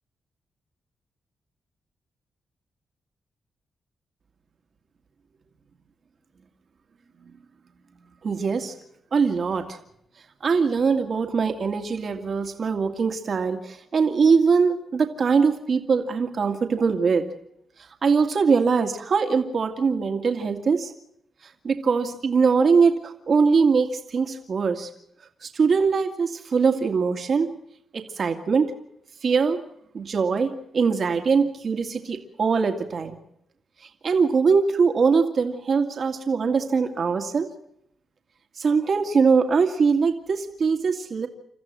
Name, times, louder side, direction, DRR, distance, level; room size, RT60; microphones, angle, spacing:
voice 1, 8.2-8.8 9.1-9.8 10.4-17.2 18.0-20.9 21.6-24.9 25.4-27.5 27.9-28.7 29.2-29.6 29.9-33.2 34.0-37.5 38.6-41.3, right 5 dB, 50° right, 6 dB, 2.1 m, -22 dB
28.0 x 14.0 x 7.6 m, 0.76 s
cardioid pair, 110°, 0 cm